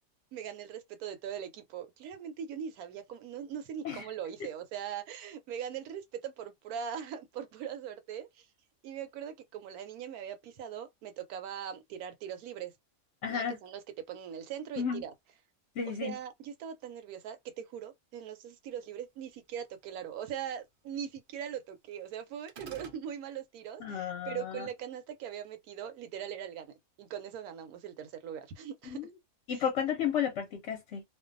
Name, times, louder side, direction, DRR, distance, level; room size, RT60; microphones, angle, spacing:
voice 1, 0.3-8.5 8.8-12.7 13.3-13.8 14.1-15.1 15.9-29.0 29.5-29.6, right 9 dB, 85° right, 1.1 m, -41 dB
voice 2, 13.2-13.6 14.8-15.0 15.8-16.2 23.8-24.7 28.8-29.1 29.5-31.0, left 8 dB, 60° left, 0.9 m, -33 dB
sound 1, 22.5-23.0, right 5 dB, 60° right, 0.5 m, -46 dB
2.5 x 2.1 x 2.5 m
omnidirectional pair, 1.5 m